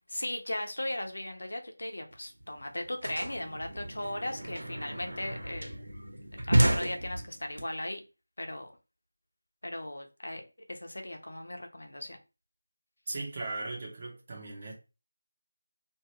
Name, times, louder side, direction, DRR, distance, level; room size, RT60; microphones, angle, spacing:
voice 1, 0.0-5.7 6.5-8.0 8.4-8.7 9.6-12.2, left 1 dB, 75° left, 0.8 m, -37 dB
sound 1, 2.1-2.2 2.4-7.6, right 1 dB, 85° right, 1.1 m, -31 dB
voice 2, 13.1-14.7, right 2 dB, 25° right, 0.8 m, -38 dB
2.7 x 2.4 x 2.9 m
figure-of-eight pair, 175°, 0 cm